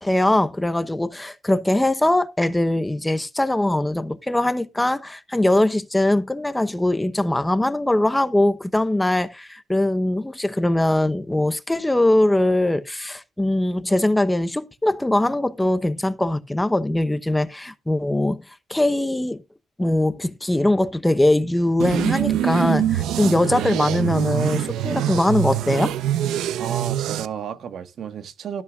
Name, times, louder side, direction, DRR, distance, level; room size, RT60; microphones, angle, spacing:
voice 1, 0.0-18.4 18.7-19.4 19.8-26.0, left 1 dB, 10° left, 0.9 m, -21 dB
sound 1, 21.8-27.3, right 11 dB, 85° right, 0.9 m, -24 dB
voice 2, 26.6-28.6, right 7 dB, 65° right, 1.5 m, -32 dB
13.5 x 11.5 x 2.4 m
cardioid pair, 90°, 0 cm